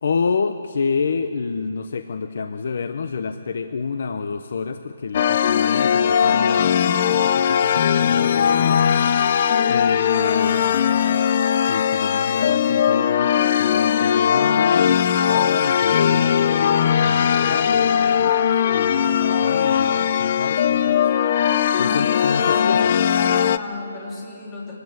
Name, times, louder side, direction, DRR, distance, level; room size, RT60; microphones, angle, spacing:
voice 1, 0.0-8.8 9.7-11.2 11.7-18.4 18.7-21.0 21.8-22.9, left 5 dB, 45° left, 9 dB, 0.9 m, -28 dB
sound 1, 5.1-23.6, left 8 dB, 30° left, 0.6 m, -19 dB
voice 2, 21.8-24.7, left 2 dB, 10° left, -4 dB, 3.5 m, -34 dB
24.5 x 19.5 x 8.0 m, 2.6 s
hypercardioid pair, 175°, 0 cm